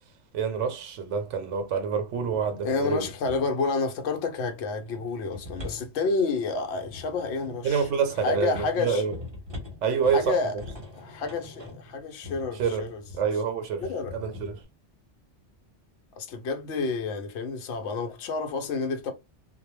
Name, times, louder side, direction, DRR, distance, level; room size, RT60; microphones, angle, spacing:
voice 1, 0.3-3.1 7.6-9.2 9.8-10.4 12.5-12.9 13.1-13.8 14.1-14.6, right 6 dB, 80° right, 0.9 m, -27 dB
sound 1, 2.1-3.7 4.8-13.3 13.8-14.6, left 2 dB, 25° right, 0.8 m, -43 dB
voice 2, 2.6-7.9 8.2-9.0 10.1-10.5 10.9-13.0 13.8-14.2 16.2-19.1, left 4 dB, 70° left, 0.8 m, -29 dB
2.2 x 2.1 x 3.0 m
omnidirectional pair, 1.2 m